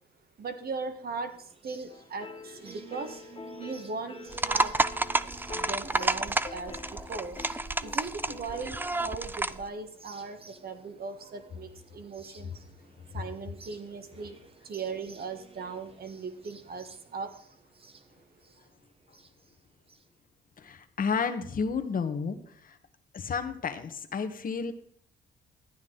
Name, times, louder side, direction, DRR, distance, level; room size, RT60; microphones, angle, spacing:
voice 1, 0.4-4.8 5.5-7.4 7.8-12.6 13.1-14.4 14.6-17.4, right 4 dB, 50° right, 8 dB, 1.5 m, -39 dB
sound 1, 1.3-20.0, right 4 dB, 30° right, 1.1 m, -53 dB
sound 2, 1.9-8.9, left 5 dB, 25° left, 0.7 m, -46 dB
sound 3, 4.3-9.6, right 2 dB, 10° right, 0.4 m, -30 dB
voice 2, 20.6-22.8 23.1-24.7, left 5 dB, 45° left, 9 dB, 1.3 m, -32 dB
13.0 x 9.4 x 3.9 m, 0.63 s
cardioid pair, 90°, 20 cm